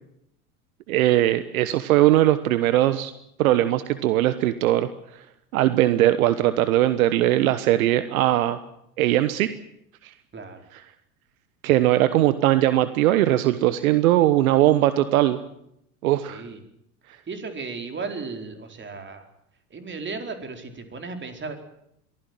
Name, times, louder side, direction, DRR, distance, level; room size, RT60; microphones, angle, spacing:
voice 1, 0.9-3.1 3.4-4.9 5.5-8.6 9.0-9.5 10.0-10.1 11.6-15.4 16.0-16.4, right 14 dB, 65° right, 13 dB, 1.3 m, -20 dB
voice 2, 10.3-10.6 16.3-16.6 17.1-19.3 19.7-21.6, right 4 dB, 25° right, 6 dB, 4.4 m, -35 dB
23.0 x 15.5 x 9.2 m, 0.75 s
hypercardioid pair, 80°, 45 cm